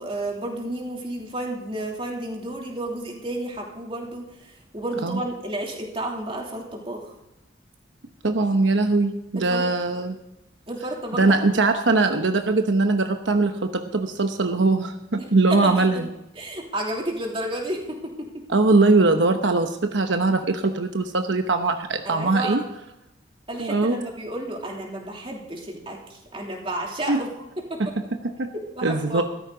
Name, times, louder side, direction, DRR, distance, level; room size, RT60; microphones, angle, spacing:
voice 1, 0.0-7.1 9.3-9.7 10.7-11.5 15.2-15.9 16.3-18.4 22.0-22.6 23.5-27.3 27.6-27.9 28.5-29.2, right 1 dB, 30° right, 0 dB, 3.1 m, -31 dB
voice 2, 8.2-10.2 11.1-16.1 18.5-22.6 23.6-24.0 27.1-27.2 28.4-28.5 28.8-29.2, right 3 dB, 85° right, 6 dB, 1.0 m, -21 dB
15.0 x 13.5 x 4.0 m, 0.87 s
head